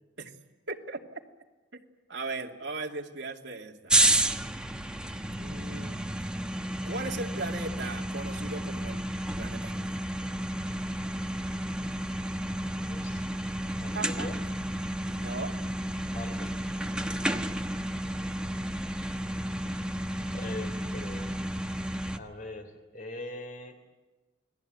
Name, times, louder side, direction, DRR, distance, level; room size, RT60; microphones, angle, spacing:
voice 1, 0.7-1.2 2.1-3.9 5.4-6.0 6.8-9.1 9.4-9.9 13.9-14.3 14.8-15.5 17.2-17.5 19.1-19.3, right 3 dB, 65° right, 1 dB, 2.6 m, -38 dB
sound 1, 3.9-22.2, right 1 dB, 5° right, 1.1 m, -31 dB
voice 2, 12.9-13.2 13.8-14.3 16.1-16.5 18.1-18.5 20.3-21.3 22.2-23.8, left 2 dB, 45° left, 6 dB, 3.7 m, -42 dB
28.5 x 20.5 x 9.4 m, 1.2 s
head